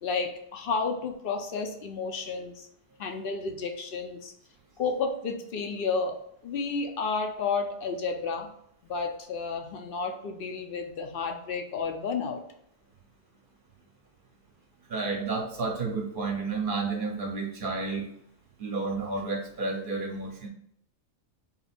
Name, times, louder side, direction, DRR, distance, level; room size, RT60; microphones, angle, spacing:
voice 1, 0.0-2.7 3.0-4.3 4.8-8.5 8.8-12.4, left 4 dB, 65° left, 4 dB, 0.7 m, -31 dB
voice 2, 14.9-18.1 18.6-20.5, right 3 dB, 55° right, 2 dB, 0.8 m, -31 dB
3.9 x 2.3 x 4.1 m, 0.70 s
omnidirectional pair, 1.1 m